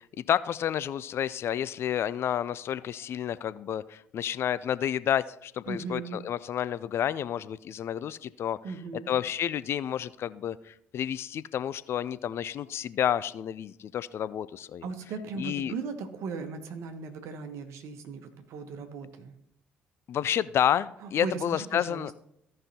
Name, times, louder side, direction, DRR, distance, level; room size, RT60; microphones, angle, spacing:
voice 1, 0.2-8.6 8.9-14.9 15.4-15.7 20.1-22.1, left 10 dB, 55° left, 17 dB, 0.4 m, -30 dB
voice 2, 5.7-6.2 8.6-9.1 14.8-19.3 21.0-22.1, right 4 dB, 65° right, 7 dB, 1.2 m, -37 dB
15.5 x 5.4 x 2.9 m, 0.76 s
hypercardioid pair, 45°, 5 cm